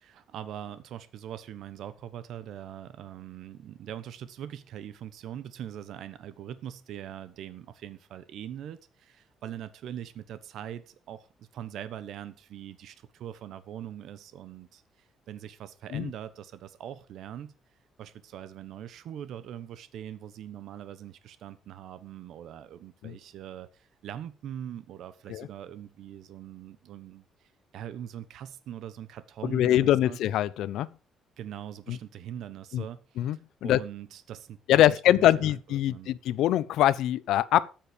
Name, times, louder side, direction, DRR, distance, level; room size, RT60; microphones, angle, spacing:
voice 1, 0.0-14.8 15.3-17.5 18.0-30.2 31.4-36.1, right 10 dB, 70° right, 1.1 m, -42 dB
voice 2, 29.4-30.9 31.9-32.0 32.7-32.8 33.2-33.8 34.7-37.7, left 13 dB, 80° left, 0.6 m, -23 dB
13.0 x 9.1 x 5.2 m
cardioid pair, 125°, 0 cm